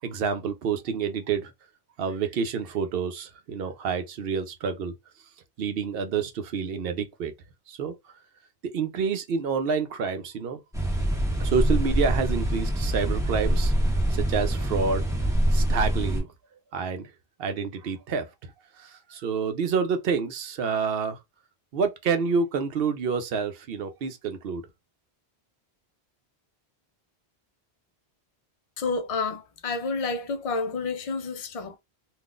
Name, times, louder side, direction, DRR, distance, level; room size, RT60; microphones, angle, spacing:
voice 1, 0.0-1.5 2.0-4.9 5.6-7.3 7.7-7.9 8.7-10.6 11.4-15.1 15.5-16.3 16.7-17.1 17.4-18.3 18.8-21.2 21.7-24.6, right 5 dB, 65° right, 0.8 m, -28 dB
sound 1, 10.7-16.2, right 1 dB, 5° right, 0.8 m, -25 dB
voice 2, 28.8-31.8, left 4 dB, 45° left, 0.5 m, -29 dB
3.7 x 2.4 x 2.4 m
omnidirectional pair, 1.1 m